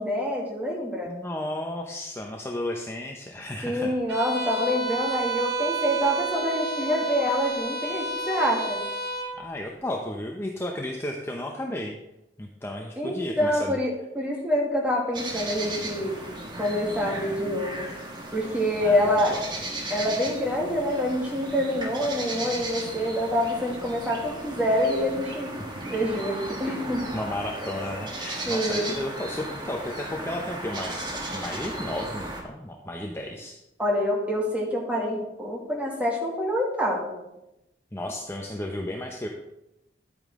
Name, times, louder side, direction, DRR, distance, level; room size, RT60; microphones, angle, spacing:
voice 1, 0.0-1.2 3.6-8.8 13.0-16.2 16.5-17.9 18.3-19.4 19.9-25.5 25.9-27.1 28.5-29.0 33.8-37.2, equal, 10° right, -2 dB, 2.1 m, -26 dB
voice 2, 1.1-3.9 9.3-12.0 12.4-13.8 18.8-19.4 25.7-25.9 27.1-33.6 37.9-39.3, left 1 dB, 15° left, 1 dB, 0.7 m, -33 dB
Bowed string instrument, 4.1-9.4, right 3 dB, 75° right, 1.9 m, -31 dB
sound 1, 15.1-32.4, right 1 dB, 25° right, 1.6 m, -36 dB
11.5 x 8.7 x 3.7 m, 0.90 s
head